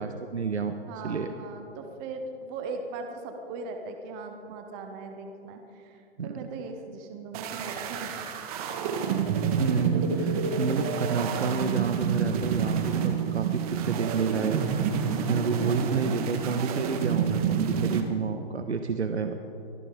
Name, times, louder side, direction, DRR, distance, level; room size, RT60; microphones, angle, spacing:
voice 1, 0.0-0.8 1.0-1.3 6.2-6.3 9.6-14.6 15.3-19.4, right 5 dB, 90° right, 7 dB, 1.2 m, -29 dB
voice 2, 0.9-8.4 15.8-16.3, right 3 dB, 5° right, 5 dB, 0.3 m, -39 dB
sound 1, 7.3-18.0, right 7 dB, 35° right, 1.6 m, -28 dB
24.0 x 15.5 x 3.6 m, 2.8 s
hypercardioid pair, 140°, 32 cm